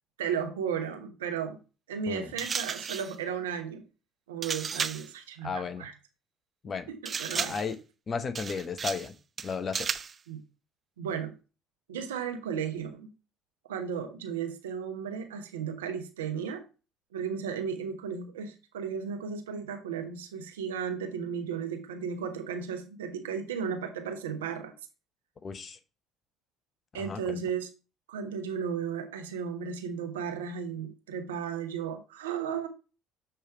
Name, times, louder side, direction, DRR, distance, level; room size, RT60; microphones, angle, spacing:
voice 1, 0.2-1.6 1.9-3.8 4.3-5.9 6.9-7.6 10.3-10.4 11.0-11.3 11.9-13.1 13.7-16.6 17.1-24.7 26.9-27.7 28.1-32.7, right 7 dB, 85° right, 0.9 m, -34 dB
sound 1, 2.4-3.2 4.4-5.1 7.1-7.7 8.3-9.1 9.4-10.2, right 6 dB, 40° right, 0.3 m, -34 dB
voice 2, 5.4-5.9 6.6-6.9 7.3-7.8 8.1-9.1 9.4-9.9 25.4-25.8 26.9-27.4, left 5 dB, 40° left, 0.8 m, -34 dB
6.8 x 3.3 x 4.4 m
hypercardioid pair, 60°, 0 cm